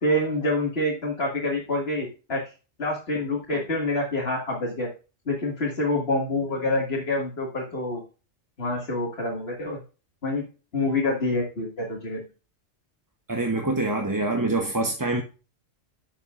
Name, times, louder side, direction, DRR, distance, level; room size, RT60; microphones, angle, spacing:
voice 1, 0.0-2.4 2.8-4.9 5.3-8.0 8.6-9.8 10.2-10.4 10.7-12.2, left 2 dB, 55° left, -2 dB, 2.2 m, -26 dB
voice 2, 13.3-15.2, right 2 dB, 20° right, 2 dB, 0.8 m, -25 dB
11.0 x 7.2 x 2.5 m, 0.33 s
omnidirectional pair, 1.3 m